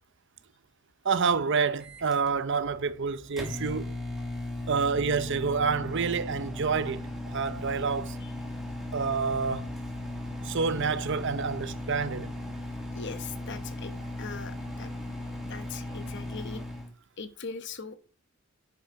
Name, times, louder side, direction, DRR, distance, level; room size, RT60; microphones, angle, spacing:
voice 1, 1.0-4.0 4.7-8.2 8.9-9.7 10.4-12.3, right 5 dB, 55° right, 0.6 m, -28 dB
Microwave oven, 1.8-16.9, left 1 dB, ahead, 2.3 m, -37 dB
voice 2, 12.6-13.9 14.2-14.9 15.5-16.6 17.2-18.0, left 5 dB, 50° left, 1.1 m, -40 dB
9.7 x 6.3 x 4.6 m
head